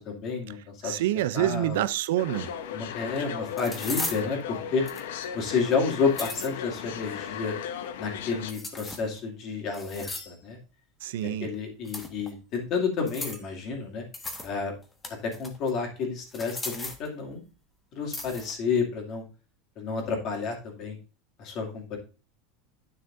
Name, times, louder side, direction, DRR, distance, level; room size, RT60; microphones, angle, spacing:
voice 1, 0.0-1.0 1.3-1.8 2.7-4.8 5.3-7.5 8.0-10.6 11.2-14.1 14.4-14.7 15.2-17.4 17.9-19.2 19.8-21.0 21.4-22.0, left 5 dB, 40° left, 2.5 m, -30 dB
voice 2, 0.8-2.5 11.0-11.5, right 13 dB, 80° right, 0.5 m, -27 dB
sound 1, 2.2-8.5, left 8 dB, 85° left, 0.9 m, -36 dB
sound 2, 3.6-4.2 4.9-5.2 5.9-6.5 8.5-9.2 9.7-10.4 11.8-12.3 13.1-13.5 14.1-14.5 14.8-15.7 16.3-17.1 18.1-18.6, left 2 dB, 15° left, 1.1 m, -37 dB
9.8 x 6.3 x 2.6 m
supercardioid pair, 150°, 0 cm